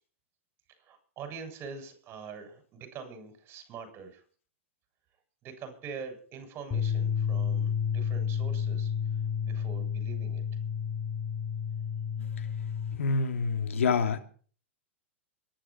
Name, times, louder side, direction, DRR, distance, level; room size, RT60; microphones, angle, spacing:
voice 1, 0.8-4.2 5.4-8.9 9.4-10.4, right 5 dB, 35° right, 7.5 m, -44 dB
sound 1, 6.7-13.0, left 7 dB, 25° left, 5.3 m, -31 dB
voice 2, 13.0-14.2, left 5 dB, 80° left, 2.9 m, -27 dB
24.0 x 11.0 x 4.7 m
hypercardioid pair, 115°, 7 cm